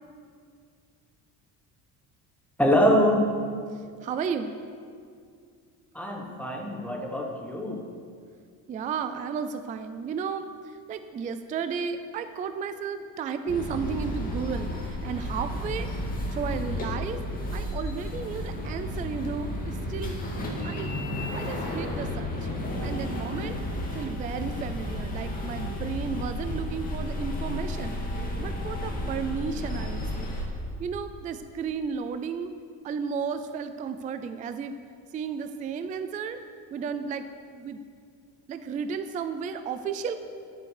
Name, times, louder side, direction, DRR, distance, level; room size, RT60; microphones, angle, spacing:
voice 1, 2.6-3.3 5.9-7.8, equal, 5° left, 1 dB, 1.2 m, -24 dB
voice 2, 4.0-4.5 8.7-10.5 10.9-15.9 16.3-17.2 17.5-20.9 21.3-22.3 22.8-23.6 23.9-28.0 28.4-30.4 30.8-32.5 32.8-34.8 35.1-36.4 36.7-37.3 37.5-37.8 38.5-40.2, right 6 dB, 20° right, 9 dB, 0.3 m, -33 dB
sound 1, 13.5-30.4, left 1 dB, 20° left, 1.9 m, -32 dB
11.0 x 9.1 x 6.5 m, 2.2 s
cardioid pair, 175°, 38 cm